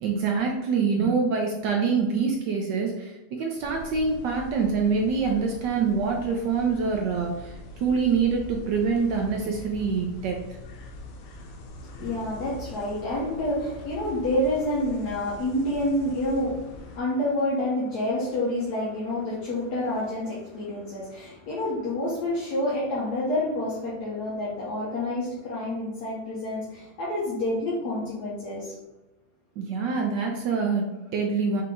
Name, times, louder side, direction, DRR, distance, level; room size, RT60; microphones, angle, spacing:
voice 1, 0.0-7.5 7.8-10.4 29.6-31.6, right 5 dB, 75° right, 1 dB, 1.0 m, -25 dB
sound 1, 3.6-17.0, left 2 dB, 90° left, 1.5 m, -43 dB
voice 2, 11.8-28.7, left 1 dB, 55° left, -7 dB, 1.3 m, -28 dB
5.0 x 2.9 x 3.5 m, 1.1 s
omnidirectional pair, 2.3 m